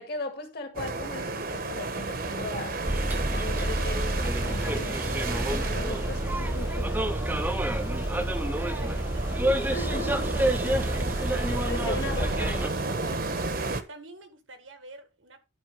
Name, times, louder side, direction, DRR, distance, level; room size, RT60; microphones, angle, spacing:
voice 1, 0.0-2.8 3.3-7.0 9.7-10.4 11.5-12.8, left 2 dB, 55° left, 2.0 m, -38 dB
sound 1, 0.8-13.8, right 3 dB, 50° right, 1.0 m, -32 dB
Bus, 2.9-12.7, right 1 dB, 10° right, 0.6 m, -28 dB
sound 2, 5.7-13.2, left 1 dB, 20° left, 1.1 m, -49 dB
voice 2, 7.4-9.9 13.1-13.4 13.9-15.4, right 2 dB, 90° right, 1.7 m, -50 dB
11.0 x 4.1 x 5.4 m
head